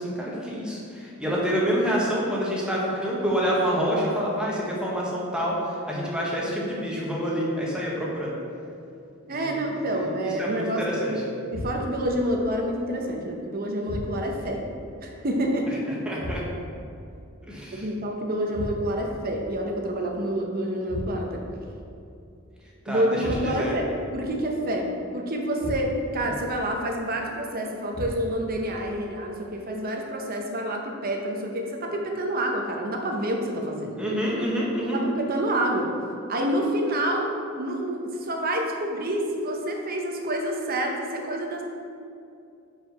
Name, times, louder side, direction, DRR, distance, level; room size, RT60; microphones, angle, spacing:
voice 1, 0.0-8.3 9.3-11.1 15.7-15.8 16.0-16.4 17.5-17.9 22.8-23.8 34.0-35.0, equal, 5° right, -5 dB, 1.1 m, -27 dB
voice 2, 9.3-14.6 15.0-15.7 17.7-21.4 22.9-23.9 24.1-34.0 34.9-35.9 36.3-41.6, right 1 dB, 45° right, 1 dB, 0.8 m, -28 dB
sound 1, 11.5-12.1 13.9-14.5 16.2-16.8 18.5-19.2 20.9-21.5 23.2-23.9 25.6-26.2 27.9-28.5, left 1 dB, 75° left, 0.8 m, -35 dB
4.9 x 4.6 x 5.7 m, 2.6 s
head